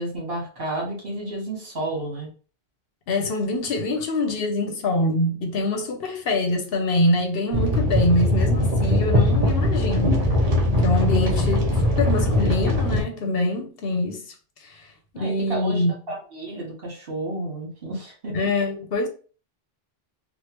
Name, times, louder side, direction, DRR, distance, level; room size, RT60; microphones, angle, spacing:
voice 1, 0.0-2.3 11.2-12.0 15.1-18.3, right 1 dB, 60° right, 1.6 m, -32 dB
voice 2, 3.1-10.3 10.8-11.7 12.0-14.3 14.6-15.9 18.3-19.1, left 2 dB, 65° left, 0.8 m, -24 dB
sound 1, 7.5-13.0, left 1 dB, 40° right, 0.9 m, -20 dB
3.2 x 2.4 x 2.9 m
omnidirectional pair, 1.1 m